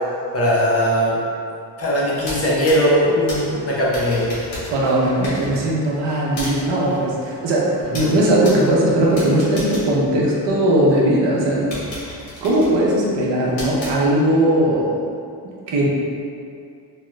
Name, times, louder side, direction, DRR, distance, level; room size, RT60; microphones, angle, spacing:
voice 1, 0.3-1.2 1.8-4.3 8.0-8.1, equal, 35° left, -6 dB, 0.6 m, -19 dB
sound 1, 2.1-10.9 11.3-11.4 11.7-14.5, left 1 dB, 85° left, 1.2 m, -35 dB
voice 2, 4.7-11.7 12.4-15.0 15.7-15.9, right 1 dB, 70° right, -4 dB, 0.7 m, -18 dB
3.0 x 2.3 x 3.0 m, 2.5 s
cardioid pair, 150°, 44 cm